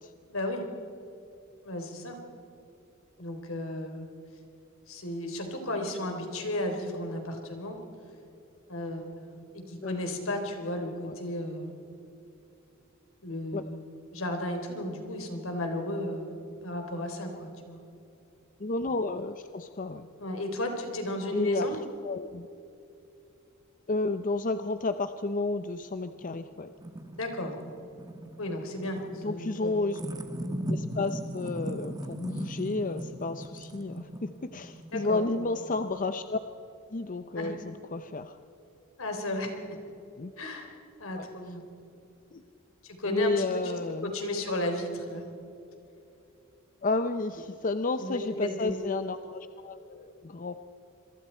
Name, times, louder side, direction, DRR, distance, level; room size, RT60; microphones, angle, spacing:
voice 1, 0.3-0.6 1.6-2.2 3.2-4.1 4.9-7.8 8.7-11.8 13.2-13.8 14.1-16.3 16.6-17.8 20.2-21.8 27.2-27.5 28.4-30.0 34.9-35.2 37.3-37.5 39.0-39.5 40.4-40.7 41.0-41.6 42.8-43.7 44.0-45.3 48.0-48.8, left 1 dB, 80° left, 4 dB, 3.7 m, -34 dB
voice 2, 18.6-20.1 21.3-21.7 22.0-22.5 23.9-26.7 29.2-30.0 30.7-36.4 36.9-38.4 40.2-40.3 41.2-41.3 42.3-42.4 43.1-44.1 46.8-50.5, left 3 dB, 40° left, 10 dB, 0.6 m, -31 dB
sound 1, 26.2-36.3, equal, 20° right, 1.2 m, -39 dB
26.5 x 23.0 x 4.5 m, 2.8 s
head